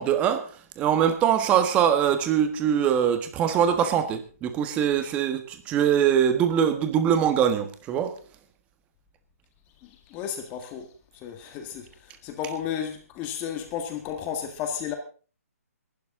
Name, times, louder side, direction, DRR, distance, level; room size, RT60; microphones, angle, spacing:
voice 1, 0.0-8.2, right 9 dB, 15° right, 1.5 m, -23 dB
voice 2, 9.8-15.0, left 8 dB, 20° left, 1.7 m, -33 dB
20.5 x 12.0 x 3.8 m
hypercardioid pair, 160°, 8 cm